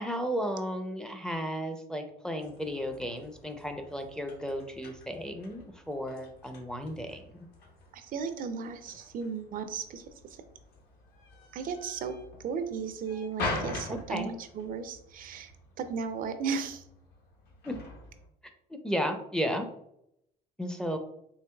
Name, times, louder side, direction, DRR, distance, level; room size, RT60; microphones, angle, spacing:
voice 1, 0.0-7.2 13.9-14.3 17.6-17.8 18.7-19.7 20.6-21.0, equal, 5° left, 5 dB, 0.4 m, -34 dB
sound 1, 2.4-18.3, left 2 dB, 70° left, 1.1 m, -44 dB
voice 2, 7.9-10.1 11.5-12.1 12.4-15.5 15.8-16.8, right 6 dB, 55° right, 9 dB, 0.4 m, -35 dB
4.6 x 2.8 x 2.2 m, 0.74 s
cardioid pair, 110°, 17 cm